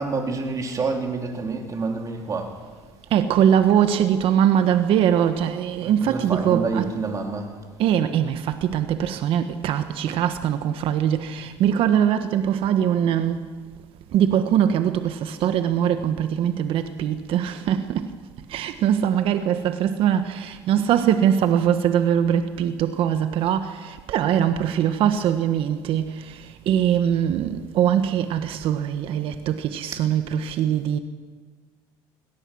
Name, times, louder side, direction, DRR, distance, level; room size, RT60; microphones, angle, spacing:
voice 1, 0.0-2.5 5.8-7.5, right 4 dB, 35° right, 4.0 m, -28 dB
voice 2, 3.1-7.0 7.8-13.5 14.1-18.2 18.5-31.0, right 9 dB, 60° right, 1.3 m, -22 dB
24.0 x 18.0 x 6.3 m
supercardioid pair, 95°, 10 cm